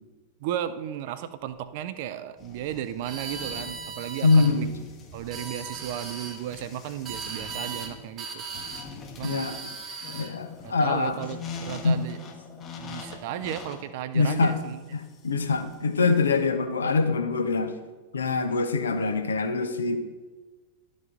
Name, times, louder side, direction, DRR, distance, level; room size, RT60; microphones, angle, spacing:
voice 1, 0.4-4.7 5.1-8.4 9.2-9.5 10.6-12.2 12.8-14.8, right 11 dB, 50° right, 13 dB, 0.5 m, -34 dB
sound 1, 2.4-16.4, left 5 dB, 30° left, 1.2 m, -44 dB
sound 2, 3.0-4.5 5.2-6.4 7.1-8.9 9.2-10.3, right 5 dB, 30° right, 1.2 m, -37 dB
voice 2, 4.2-4.7 9.2-9.5 10.1-11.1 11.8-12.0 14.1-14.6 14.9-17.7 18.1-20.0, left 4 dB, 70° left, 7 dB, 0.8 m, -24 dB
11.5 x 5.4 x 3.8 m, 1.3 s
figure-of-eight pair, 90°, 0 cm